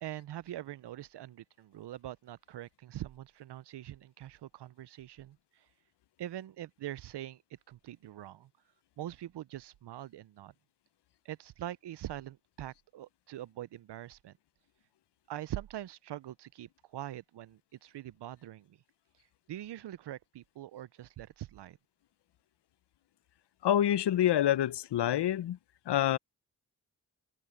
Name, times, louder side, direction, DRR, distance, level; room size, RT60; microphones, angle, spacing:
voice 1, 0.0-5.4 6.2-7.4 7.7-8.5 9.0-10.5 11.2-14.3 15.3-18.8 19.5-21.8, right 13 dB, 85° right, 0.6 m, -43 dB
voice 2, 23.6-25.6 25.9-26.2, left 11 dB, 85° left, 0.6 m, -27 dB
open air
cardioid pair, 40°, 40 cm